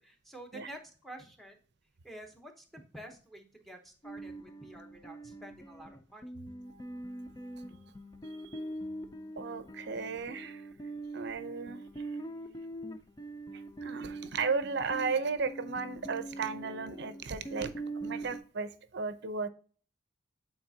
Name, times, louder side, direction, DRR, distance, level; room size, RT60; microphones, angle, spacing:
voice 1, 0.0-1.6 2.0-6.2, right 1 dB, ahead, 3 dB, 0.9 m, -49 dB
sound 1, 4.0-18.4, right 2 dB, 20° left, 0.4 m, -43 dB
voice 2, 6.7-7.0 7.4-7.7 8.5-8.6 9.4-10.6 11.1-11.8 13.8-17.7 18.0-19.5, right 4 dB, 60° right, 12 dB, 0.6 m, -35 dB
8.7 x 4.1 x 2.7 m, 0.41 s
head